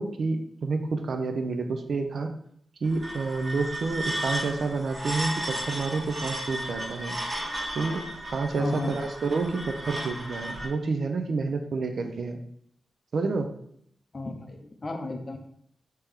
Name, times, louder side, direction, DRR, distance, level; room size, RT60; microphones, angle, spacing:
voice 1, 0.0-2.3 2.8-7.2 7.8-12.4 13.1-13.5, right 3 dB, 70° right, 6 dB, 0.4 m, -29 dB
sound 1, 2.8-10.7, right 1 dB, 35° right, 1.0 m, -34 dB
voice 2, 8.6-9.0 14.1-15.4, left 2 dB, 40° left, 4 dB, 0.5 m, -32 dB
3.2 x 2.8 x 3.5 m, 0.69 s
wide cardioid pair, 105°, 0 cm